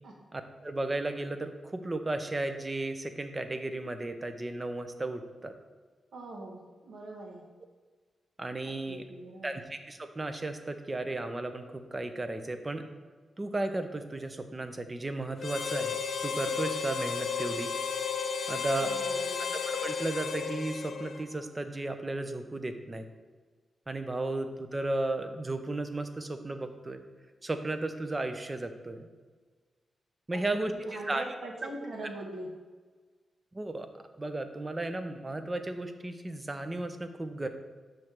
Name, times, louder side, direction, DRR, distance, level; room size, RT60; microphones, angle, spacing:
voice 1, 0.3-5.5 8.4-9.0 9.4-12.8 13.4-17.7 18.5-18.9 19.4-23.0 23.9-27.0 27.4-29.1 30.3-31.2 31.6-31.7 33.5-33.9 34.2-37.5, right 2 dB, 20° right, 7 dB, 0.6 m, -34 dB
voice 2, 6.1-7.4 8.9-9.6 18.8-19.5 24.2-24.3 30.3-32.5, right 1 dB, 65° right, -1 dB, 1.3 m, -42 dB
Harmonica, 15.4-21.4, left 6 dB, 60° left, 0.4 m, -33 dB
6.5 x 3.2 x 5.8 m, 1.4 s
wide cardioid pair, 115°, 0 cm